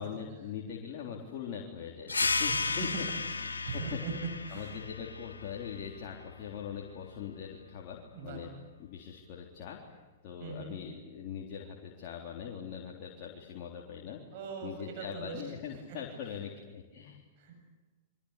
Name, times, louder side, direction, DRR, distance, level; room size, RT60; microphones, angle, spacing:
voice 1, 0.0-8.5 8.8-10.0 10.2-14.2 14.6-17.2, left 8 dB, 45° left, -1 dB, 3.8 m, -42 dB
sound 1, 2.1-7.3, left 4 dB, 85° left, 2.0 m, -35 dB
voice 2, 3.6-4.1 4.5-4.8 8.1-8.4 10.4-10.7 14.3-16.0 17.4-17.6, right 4 dB, 50° right, 3 dB, 7.9 m, -41 dB
29.5 x 23.5 x 8.4 m, 1.3 s
figure-of-eight pair, 105°, 0 cm